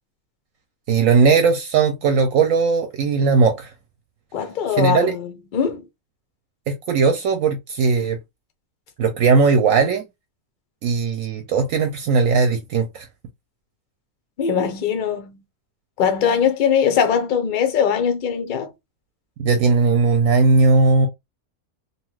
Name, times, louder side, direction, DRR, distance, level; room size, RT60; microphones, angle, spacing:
voice 1, 0.9-3.7 4.8-5.1 6.7-8.2 9.0-10.1 10.8-13.1 19.4-21.1, right 4 dB, 70° right, 0.9 m, -18 dB
voice 2, 4.3-5.9 14.4-15.4 16.0-18.7, left 7 dB, 65° left, 0.5 m, -21 dB
2.8 x 2.4 x 3.0 m
omnidirectional pair, 1.5 m